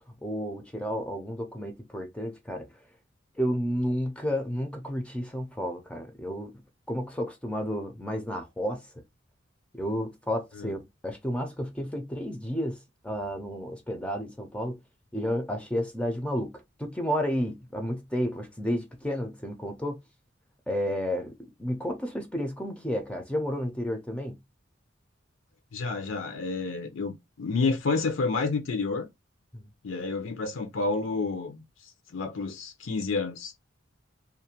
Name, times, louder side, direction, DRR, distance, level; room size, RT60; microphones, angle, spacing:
voice 1, 0.2-2.7 3.4-6.6 6.9-8.8 9.7-12.8 13.0-14.8 15.1-20.0 20.7-21.3 21.6-24.4 29.5-29.7, equal, 5° left, 0.4 m, -31 dB
voice 2, 25.7-29.1 29.8-33.5, left 4 dB, 80° left, 0.6 m, -30 dB
2.4 x 2.1 x 2.7 m
head